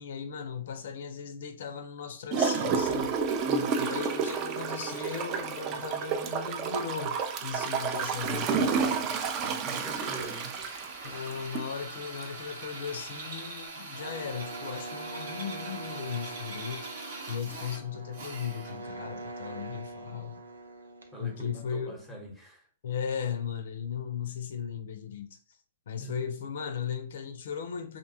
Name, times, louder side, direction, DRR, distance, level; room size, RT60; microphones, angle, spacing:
voice 1, 0.0-3.1 3.8-7.1 7.4-8.9 11.0-20.4 21.2-22.0 22.8-25.4 25.9-28.0, left 7 dB, 65° left, 0.4 m, -37 dB
Gurgling / Toilet flush, 2.3-11.7 12.2-12.3, right 5 dB, 35° right, 0.4 m, -30 dB
voice 2, 3.4-3.8 9.4-10.5 21.1-22.7 26.0-26.5, right 2 dB, 5° right, 0.8 m, -43 dB
Drill, 9.6-18.9, right 3 dB, 55° right, 0.9 m, -42 dB
sound 1, 13.9-21.7, right 2 dB, 85° right, 0.5 m, -43 dB
2.5 x 2.2 x 2.7 m
hypercardioid pair, 120°, 0 cm